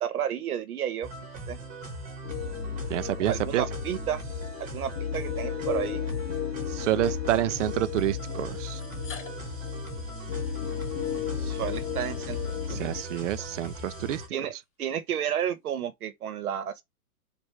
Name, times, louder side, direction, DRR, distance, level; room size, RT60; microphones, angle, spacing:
voice 1, 0.0-1.1 1.5-1.6 3.3-4.2 4.6-6.0 11.4-13.0 14.3-14.5 14.8-16.8, right 9 dB, 70° right, 1.3 m, -32 dB
sound 1, 1.0-14.3, right 1 dB, 15° right, 1.2 m, -40 dB
sound 2, 2.2-13.0, left 8 dB, 35° left, 0.5 m, -34 dB
voice 2, 2.9-3.7 6.7-8.8 12.7-14.2, right 14 dB, 55° right, 0.6 m, -28 dB
sound 3, 6.4-6.5 7.6-7.7 8.7-14.7, left 6 dB, 55° left, 2.8 m, -51 dB
4.8 x 2.6 x 3.3 m
hypercardioid pair, 145°, 45 cm